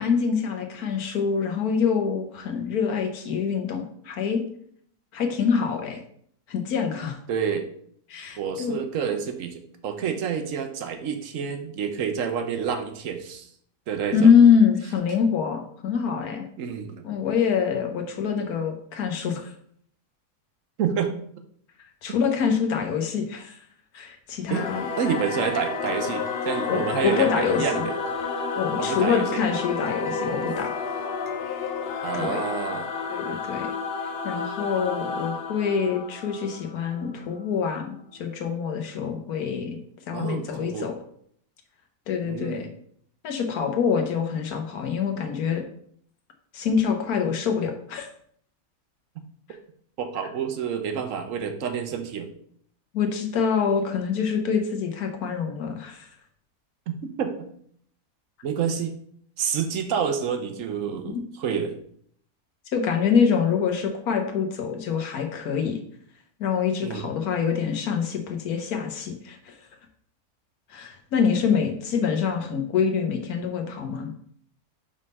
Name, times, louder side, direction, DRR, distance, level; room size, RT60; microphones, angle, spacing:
voice 1, 0.0-4.4 5.1-6.0 6.5-7.2 8.1-8.8 14.1-16.4 17.0-19.5 22.0-23.6 23.9-24.8 26.7-27.9 28.6-30.7 32.1-32.4 33.1-33.7 34.2-39.8 40.1-41.0 42.1-42.7 43.2-45.6 46.5-48.1 52.9-56.1 61.1-61.2 62.7-65.8 66.4-69.5 70.7-74.1, left 6 dB, 90° left, 5 dB, 1.5 m, -25 dB
voice 2, 7.3-7.7 8.4-13.5 13.9-14.3 16.6-17.0 20.8-21.1 24.5-24.7 25.0-27.9 28.8-29.4 32.0-32.9 40.1-40.9 42.2-42.6 50.0-52.3 56.9-57.5 58.4-58.9 59.4-61.8 66.8-67.1, right 7 dB, 65° right, 6 dB, 1.1 m, -28 dB
Singing / Musical instrument, 24.5-37.4, left 5 dB, 55° left, 0.7 m, -31 dB
5.4 x 3.6 x 5.2 m, 0.63 s
omnidirectional pair, 1.5 m